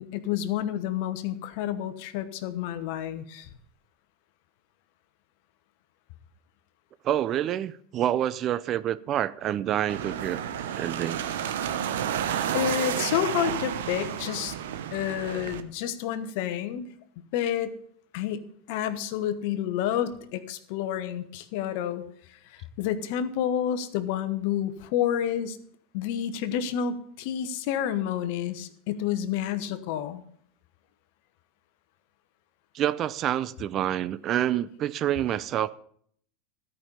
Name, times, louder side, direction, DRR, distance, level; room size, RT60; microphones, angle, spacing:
voice 1, 0.0-3.5 12.5-14.5 14.9-16.9 17.3-17.7 18.1-22.0 22.5-25.6 25.9-30.2, left 10 dB, 65° left, 1.0 m, -29 dB
voice 2, 7.0-10.4 10.8-11.2 32.7-35.7, right 11 dB, 40° right, 0.5 m, -27 dB
sound 1, 9.9-15.6, right 9 dB, 75° right, 0.8 m, -31 dB
13.0 x 5.5 x 6.9 m
hypercardioid pair, 100°, 0 cm